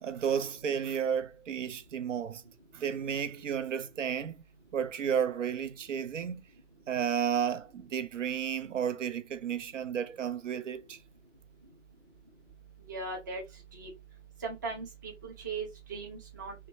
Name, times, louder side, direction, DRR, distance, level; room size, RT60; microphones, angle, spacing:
voice 1, 0.0-2.4 2.7-4.4 4.7-6.4 6.9-11.0, right 8 dB, 80° right, 0.5 m, -32 dB
voice 2, 12.9-13.4 13.7-13.9 14.4-16.5, right 4 dB, 15° right, 0.4 m, -38 dB
2.8 x 2.2 x 2.9 m
figure-of-eight pair, 135°, 37 cm